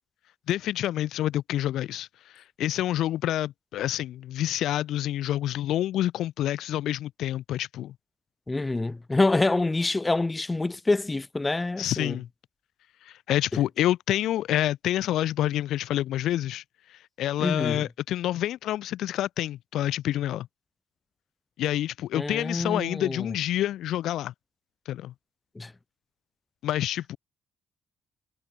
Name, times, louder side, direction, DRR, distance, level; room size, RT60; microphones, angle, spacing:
voice 1, 0.5-2.1 2.3-7.9 11.8-12.3 13.1-16.6 17.2-20.5 21.6-24.3 24.9-25.1 26.6-27.2, left 13 dB, 80° left, 2.5 m, -28 dB
voice 2, 8.5-12.2 17.4-17.8 22.1-23.3 25.5-25.7, left 2 dB, 15° left, 1.5 m, -26 dB
cardioid pair, 145°, 0 cm